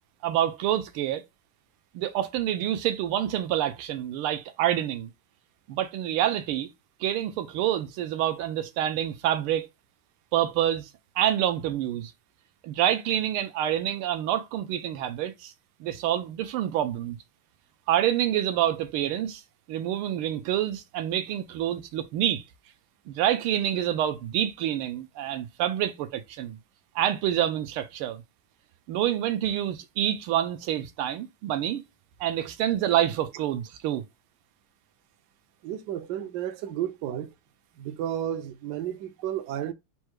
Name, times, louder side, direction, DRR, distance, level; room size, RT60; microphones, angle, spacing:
voice 1, 0.2-1.2 1.9-5.1 5.7-6.7 7.0-9.7 10.3-10.9 11.2-12.1 12.6-15.5 15.8-17.2 17.9-19.4 19.7-22.4 23.1-26.6 26.9-28.2 28.9-31.8 32.2-34.0, right 11 dB, 85° right, 1.5 m, -27 dB
voice 2, 35.6-37.3 37.8-39.7, right 11 dB, 70° right, 1.0 m, -32 dB
4.5 x 2.2 x 4.6 m
omnidirectional pair, 2.4 m